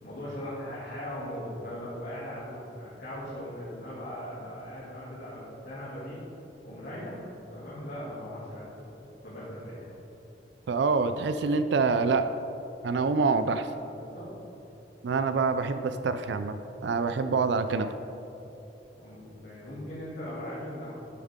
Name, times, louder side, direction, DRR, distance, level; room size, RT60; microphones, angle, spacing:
voice 1, 0.0-6.2 6.6-8.9 9.2-9.9 13.9-14.3 19.0-21.0, equal, 60° left, -10 dB, 2.3 m, -39 dB
voice 2, 10.7-12.3 12.8-13.7 15.0-16.6 16.8-17.9, right 4 dB, 70° right, 10 dB, 0.4 m, -26 dB
11.5 x 7.2 x 3.6 m, 3.0 s
head